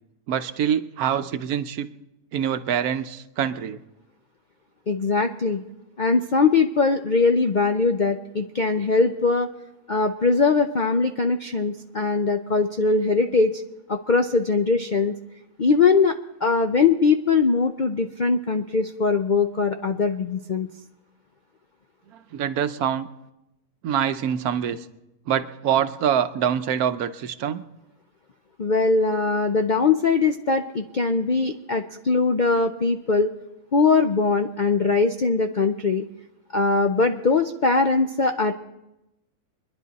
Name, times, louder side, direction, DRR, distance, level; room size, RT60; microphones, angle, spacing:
voice 1, 0.3-1.9 2.3-3.8 22.1-23.1 23.8-24.8 25.3-27.6, right 9 dB, 75° right, 11 dB, 1.2 m, -25 dB
voice 2, 4.9-5.6 6.0-9.5 9.9-13.6 13.9-15.2 15.6-20.7 28.6-33.3 33.7-36.0 36.5-38.5, left 4 dB, 60° left, 5 dB, 0.5 m, -21 dB
24.5 x 10.5 x 4.1 m, 0.92 s
omnidirectional pair, 1.6 m